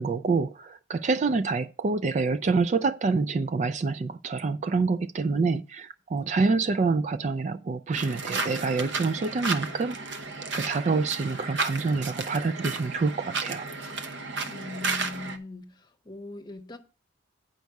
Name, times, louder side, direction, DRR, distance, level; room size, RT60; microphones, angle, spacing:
voice 1, 0.0-10.0 10.5-13.7, right 4 dB, 35° right, 0.3 m, -27 dB
sound 1, 7.9-15.4, right 3 dB, 65° right, 0.9 m, -33 dB
voice 2, 14.5-16.8, left 2 dB, 20° left, 1.1 m, -40 dB
9.3 x 5.3 x 4.6 m
head